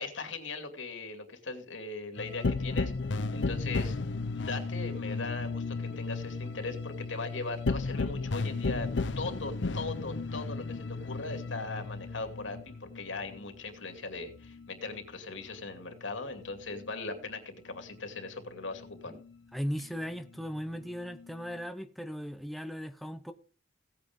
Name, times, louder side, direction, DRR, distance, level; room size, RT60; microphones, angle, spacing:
voice 1, 0.0-2.9 3.3-8.9 9.2-19.1, left 3 dB, 90° left, 2.5 m, -39 dB
sound 1, 2.2-15.2 15.5-17.4 17.7-19.4 19.8-21.6, left 3 dB, 75° left, 0.7 m, -35 dB
voice 2, 19.5-23.3, equal, ahead, 0.7 m, -37 dB
16.5 x 8.8 x 3.7 m
head